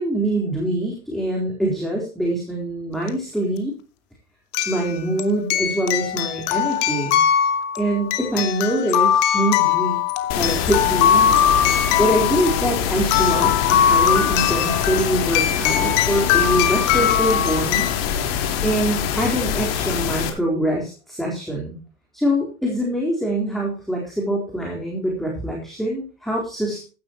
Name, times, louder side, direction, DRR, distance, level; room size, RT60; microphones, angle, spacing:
voice 1, 0.0-3.7 4.7-7.2 7.8-10.0 10.4-11.4 12.0-17.9 18.6-21.8 22.1-26.9, right 1 dB, ahead, -2 dB, 4.0 m, -24 dB
sound 1, 3.1-3.2 4.5-17.9, left 9 dB, 50° left, 2.4 m, -21 dB
sound 2, 10.3-20.3, left 8 dB, 65° left, 4.1 m, -24 dB
16.0 x 12.0 x 3.0 m, 0.34 s
supercardioid pair, 155°, 32 cm